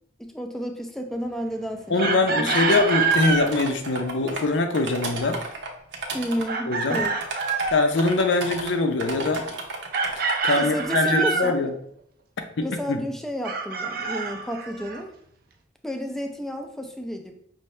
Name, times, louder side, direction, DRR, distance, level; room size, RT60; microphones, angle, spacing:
voice 1, 0.2-2.8 6.1-7.1 10.6-11.7 12.6-15.1 15.8-17.4, equal, ahead, 4 dB, 0.4 m, -31 dB
voice 2, 1.9-5.4 6.7-7.0 7.7-9.5 10.4-11.7 12.6-13.0, left 3 dB, 85° left, 6 dB, 0.6 m, -23 dB
Chicken rooster, 2.0-3.5 6.5-7.8 9.9-11.5 13.4-15.0, right 4 dB, 55° right, 0.5 m, -26 dB
sound 1, 2.5-4.4 4.7-6.5 6.9-8.7 9.0-10.4, right 3 dB, 80° right, 0.8 m, -33 dB
5.5 x 2.6 x 3.2 m, 0.68 s
head